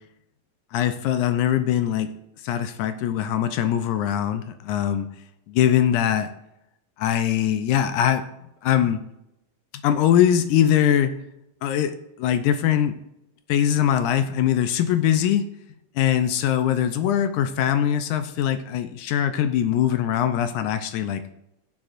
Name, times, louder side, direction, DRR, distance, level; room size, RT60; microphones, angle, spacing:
voice 1, 0.7-2.1 2.4-5.1 5.5-6.3 7.0-8.2 8.6-9.0 9.8-11.2 11.6-13.0 13.5-15.5 16.0-21.3, left 10 dB, 80° left, 9 dB, 1.9 m, -22 dB
17.0 x 7.7 x 2.5 m, 0.85 s
omnidirectional pair, 3.7 m